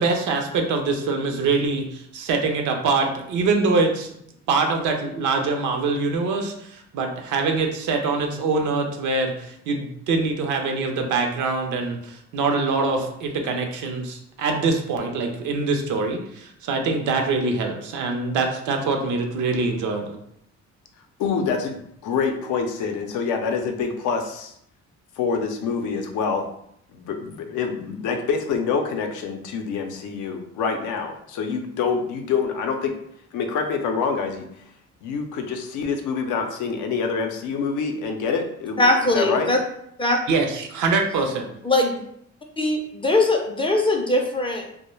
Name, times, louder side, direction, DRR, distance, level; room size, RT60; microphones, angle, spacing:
voice 1, 0.0-4.1 4.5-20.2 40.3-41.4, right 3 dB, 80° right, 3 dB, 0.5 m, -24 dB
voice 2, 21.2-24.5 25.2-26.5 26.9-32.9 33.3-34.6 35.0-38.9 39.1-39.5, left 5 dB, 80° left, 4 dB, 0.5 m, -26 dB
voice 3, 38.8-39.6 40.0-40.2 41.7-42.0 42.6-42.8 43.0-44.8, left 2 dB, 20° left, 1 dB, 0.3 m, -20 dB
2.2 x 2.1 x 3.0 m, 0.72 s
cardioid pair, 90°, 30 cm